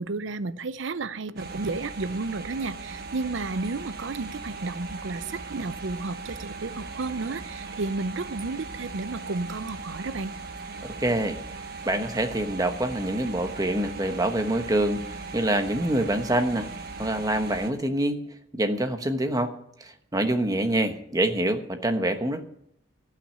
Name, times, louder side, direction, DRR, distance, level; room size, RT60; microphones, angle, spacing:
voice 1, 0.0-10.3, right 3 dB, 75° right, 0.6 m, -32 dB
sound 1, 1.4-17.7, right 3 dB, 55° right, 1.4 m, -39 dB
voice 2, 11.0-11.4 11.9-16.7 17.0-18.2 18.5-19.5 19.8-22.4, right 1 dB, 20° right, 1.1 m, -26 dB
15.0 x 5.9 x 8.8 m
head